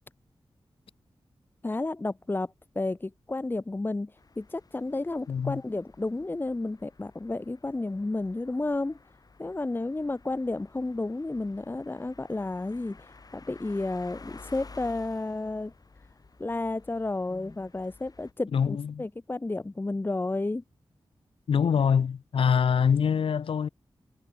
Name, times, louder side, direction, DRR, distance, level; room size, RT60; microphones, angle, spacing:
voice 1, 1.6-9.0 9.4-13.1 13.3-15.7 16.4-20.6, left 2 dB, 20° left, 0.9 m, -32 dB
sound 1, 4.2-18.3, left 4 dB, 45° left, 4.5 m, -53 dB
voice 2, 5.3-5.6 18.5-19.0 21.5-23.7, left 7 dB, 75° left, 0.7 m, -24 dB
wide cardioid pair, 95°, 9 cm